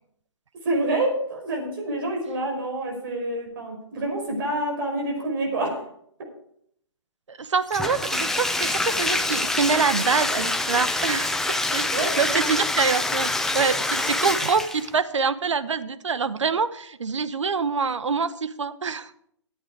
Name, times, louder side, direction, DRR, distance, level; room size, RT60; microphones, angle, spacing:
voice 1, 0.6-5.9 11.9-12.5, right 1 dB, 50° right, 2 dB, 5.3 m, -27 dB
voice 2, 7.3-19.1, right 5 dB, 80° right, 13 dB, 1.0 m, -25 dB
Bathtub (filling or washing), 7.7-14.9, left 2 dB, 5° left, 0.6 m, -26 dB
14.0 x 8.7 x 4.9 m, 0.70 s
hypercardioid pair, 140°, 15 cm